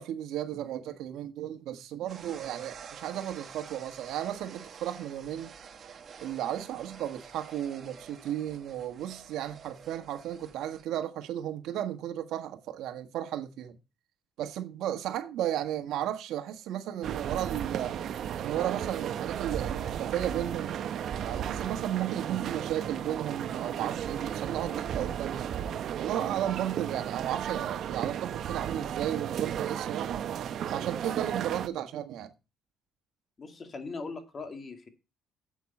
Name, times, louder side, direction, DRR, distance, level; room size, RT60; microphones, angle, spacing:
voice 1, 0.0-5.5 6.2-13.8 14.4-18.0 18.4-20.7 21.2-25.5 26.0-30.3 30.7-32.3, right 11 dB, 75° right, 1.5 m, -34 dB
sound 1, 2.1-10.8, right 6 dB, 40° right, 1.6 m, -49 dB
sound 2, 17.0-31.7, right 9 dB, 55° right, 0.8 m, -34 dB
voice 2, 33.4-34.9, left 3 dB, 30° left, 2.3 m, -40 dB
9.9 x 8.5 x 4.3 m
cardioid pair, 125°, 0 cm